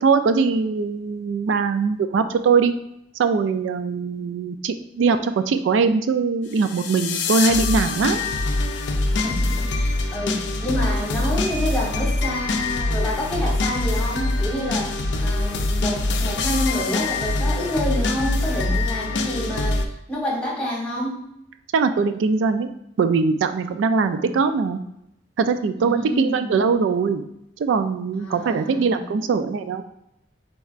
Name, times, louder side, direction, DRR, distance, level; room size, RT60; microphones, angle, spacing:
voice 1, 0.0-2.7 3.2-8.2 21.7-22.7 23.0-24.8 25.4-27.2 27.6-29.8, right 5 dB, 85° right, 10 dB, 0.3 m, -21 dB
sound 1, 6.5-19.8, left 2 dB, 70° left, 0.4 m, -24 dB
voice 2, 9.0-21.2 24.0-24.3 25.8-26.6 28.1-29.0, equal, 5° left, -5 dB, 1.2 m, -28 dB
4.5 x 4.1 x 2.4 m, 0.80 s
head